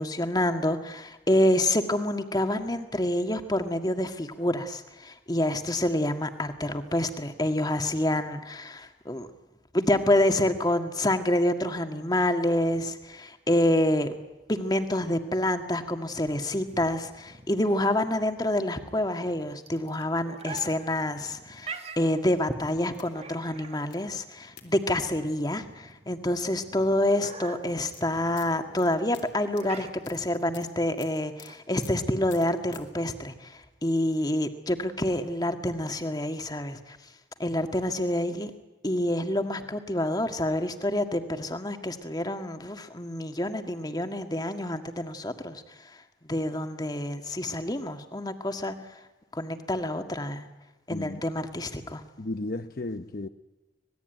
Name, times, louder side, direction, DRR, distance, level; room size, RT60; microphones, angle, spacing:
voice 1, 0.0-9.3 9.7-14.2 14.5-37.0 37.4-38.5 38.8-46.0 46.3-48.7 49.3-50.5 50.9-52.0, left 1 dB, 20° left, 7 dB, 1.8 m, -27 dB
sound 1, 16.6-32.5, right 4 dB, 35° right, 1.7 m, -46 dB
sound 2, 20.2-20.7 21.6-21.7 22.9-23.1 23.9-24.0 24.6-24.7 26.2-26.3 26.5-26.8 27.5-31.5 31.8-32.0 32.3-32.8, left 10 dB, 80° left, 3.6 m, -50 dB
voice 2, 50.9-51.3 52.2-53.3, left 2 dB, 55° left, 9 dB, 0.8 m, -34 dB
26.0 x 20.0 x 9.1 m, 1.1 s
head